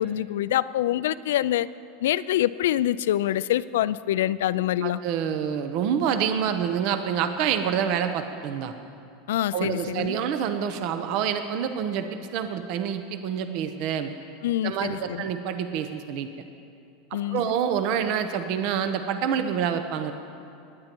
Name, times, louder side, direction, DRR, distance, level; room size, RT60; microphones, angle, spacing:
voice 1, 0.0-1.7 2.0-5.0 9.3-10.2 14.4-15.3 17.1-17.5, left 13 dB, 85° left, 17 dB, 0.3 m, -25 dB
voice 2, 4.8-8.7 9.5-14.1 14.6-16.3 17.3-20.1, right 8 dB, 60° right, 8 dB, 0.8 m, -27 dB
20.0 x 9.5 x 4.5 m, 2.6 s
supercardioid pair, 125°, 0 cm